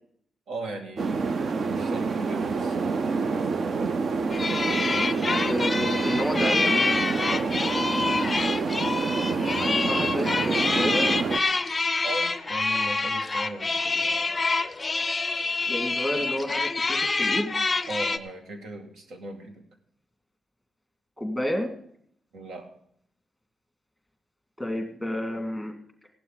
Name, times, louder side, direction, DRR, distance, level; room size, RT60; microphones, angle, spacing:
voice 1, 0.5-1.3 1.7-3.9 7.2-7.5 12.0-14.3 17.9-19.6 22.3-22.7, right 2 dB, 75° right, 4 dB, 2.3 m, -38 dB
sound 1, 1.0-11.4, right 4 dB, 45° right, 0.5 m, -27 dB
sound 2, 4.3-18.2, left 3 dB, 20° left, 0.5 m, -27 dB
voice 2, 4.7-6.7 9.6-11.2 15.7-17.5 21.2-21.7 24.6-25.7, left 1 dB, ahead, 3 dB, 2.1 m, -30 dB
16.5 x 11.5 x 4.0 m, 0.66 s
wide cardioid pair, 165°, 0 cm